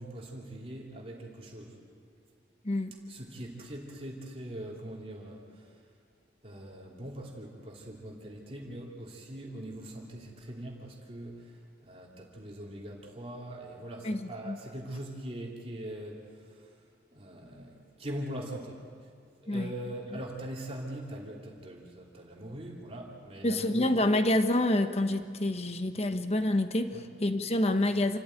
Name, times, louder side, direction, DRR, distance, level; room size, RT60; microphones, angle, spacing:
voice 1, 0.0-1.7 3.1-5.4 6.4-11.4 11.8-16.2 17.1-18.8 19.4-23.9 26.9-27.0, right 1 dB, 35° right, -2 dB, 2.9 m, -42 dB
voice 2, 2.6-3.0 14.0-14.6 19.5-19.7 23.4-28.2, left 1 dB, 35° left, 8 dB, 1.1 m, -27 dB
28.5 x 14.0 x 9.3 m, 2.2 s
head